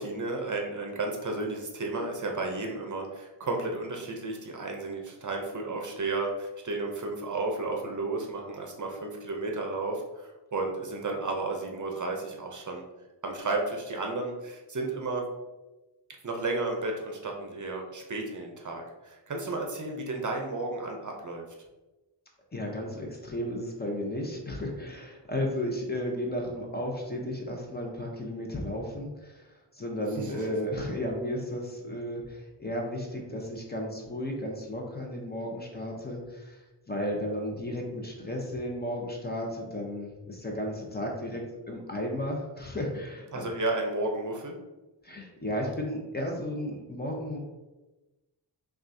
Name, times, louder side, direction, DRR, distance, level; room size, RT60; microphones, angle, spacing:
voice 1, 0.0-12.8 13.2-15.3 16.2-21.4 30.1-30.5 43.3-44.6, right 2 dB, 45° right, 2 dB, 0.7 m, -33 dB
voice 2, 22.5-29.4 29.8-36.6 36.9-43.5 45.0-47.4, left 1 dB, 25° left, 0 dB, 0.7 m, -34 dB
5.8 x 2.4 x 2.7 m, 1.1 s
wide cardioid pair, 105°, 42 cm